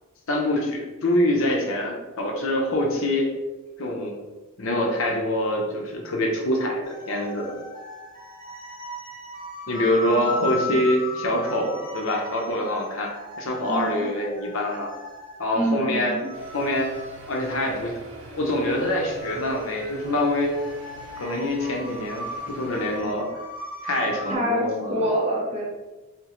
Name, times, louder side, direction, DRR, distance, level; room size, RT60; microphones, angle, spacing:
voice 1, 0.3-3.3 3.8-4.2 4.6-7.5 9.7-14.9 15.4-16.2 16.5-16.9 17.3-18.0 18.4-20.6 21.2-23.3 23.8-25.0, left 1 dB, 65° left, 1 dB, 0.6 m, -25 dB
sound 1, 6.8-24.4, left 1 dB, 20° left, 0.8 m, -37 dB
voice 2, 10.1-10.8 13.7-14.1 15.5-16.3 24.3-25.7, equal, 30° right, -1 dB, 0.6 m, -27 dB
sound 2, 16.3-23.0, right 2 dB, 65° right, 0.7 m, -44 dB
3.6 x 2.8 x 3.0 m, 1.2 s
head